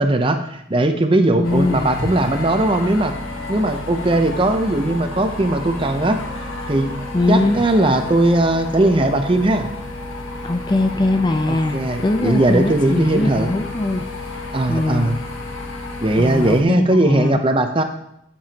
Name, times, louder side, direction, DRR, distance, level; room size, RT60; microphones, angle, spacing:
voice 1, 0.0-3.1 3.5-6.2 6.7-6.9 7.3-9.7 11.5-13.5 14.5-15.2 16.0-17.8, right 1 dB, 25° right, 6 dB, 0.6 m, -18 dB
sound 1, 1.4-16.6, left 2 dB, 85° left, 1.1 m, -31 dB
voice 2, 1.4-2.1 7.1-7.6 10.4-14.1 14.7-15.2 16.2-17.4, left 2 dB, 20° left, 7 dB, 0.4 m, -21 dB
10.5 x 6.9 x 2.8 m, 0.77 s
head